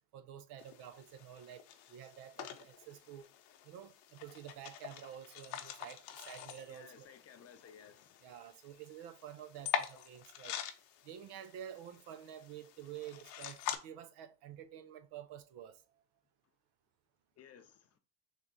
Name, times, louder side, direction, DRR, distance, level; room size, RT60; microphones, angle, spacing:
voice 1, 0.1-3.3 3.6-7.1 8.2-10.6 11.0-15.8, right 10 dB, 75° right, 0.7 m, -50 dB
sound 1, 0.6-13.8, left 10 dB, 75° left, 0.8 m, -45 dB
voice 2, 6.7-8.2 17.4-18.0, left 7 dB, 40° left, 0.6 m, -57 dB
3.6 x 3.1 x 3.9 m
cardioid pair, 135°, 41 cm